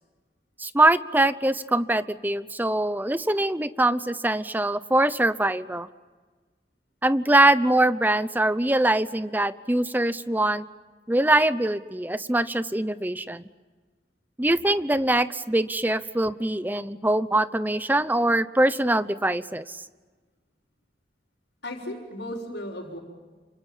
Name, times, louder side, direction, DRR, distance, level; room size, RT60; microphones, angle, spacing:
voice 1, 0.6-5.9 7.0-10.6 11.1-13.5 14.4-19.8, right 1 dB, 10° right, 14 dB, 0.8 m, -23 dB
voice 2, 21.6-23.0, left 1 dB, 75° left, -7 dB, 5.7 m, -35 dB
29.0 x 26.0 x 7.4 m, 1.3 s
head